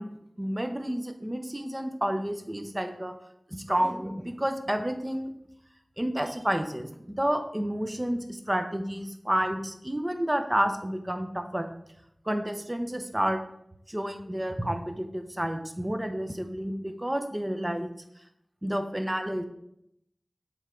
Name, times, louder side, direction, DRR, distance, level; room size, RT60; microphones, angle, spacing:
voice 1, 0.0-3.1 3.5-5.3 6.0-11.7 12.3-13.4 13.9-17.9 18.6-19.4, equal, 20° right, 6 dB, 0.7 m, -30 dB
7.1 x 3.6 x 4.4 m, 0.76 s
wide cardioid pair, 70°, 0 cm